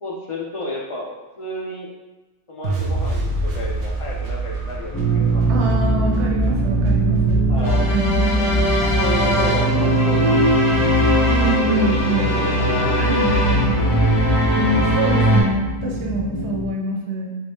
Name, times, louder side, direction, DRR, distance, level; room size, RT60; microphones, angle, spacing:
voice 1, 0.0-1.9 2.5-5.4 7.5-7.9 8.9-10.5 11.3-12.9 13.2-13.6, left 1 dB, 40° left, -3 dB, 0.5 m, -31 dB
sound 1, 2.6-8.8, right 1 dB, 60° right, 0.6 m, -28 dB
sound 2, 4.9-16.6, right 2 dB, 25° left, 0.9 m, -21 dB
voice 2, 5.5-8.1 11.3-12.3 12.9-13.9 14.6-17.4, right 2 dB, 85° right, -1 dB, 0.9 m, -25 dB
sound 3, 7.6-15.4, left 1 dB, 20° right, 1.4 m, -20 dB
2.7 x 2.7 x 3.5 m, 1.1 s
omnidirectional pair, 1.1 m